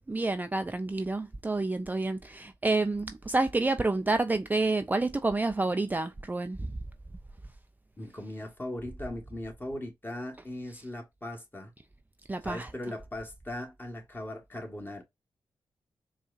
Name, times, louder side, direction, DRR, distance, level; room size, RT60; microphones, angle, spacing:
voice 1, 0.1-6.6 12.3-12.7, right 2 dB, 20° right, 0.4 m, -29 dB
voice 2, 8.0-11.7 12.4-15.0, left 1 dB, 20° left, 1.6 m, -39 dB
4.5 x 2.4 x 2.6 m
supercardioid pair, 45°, 9 cm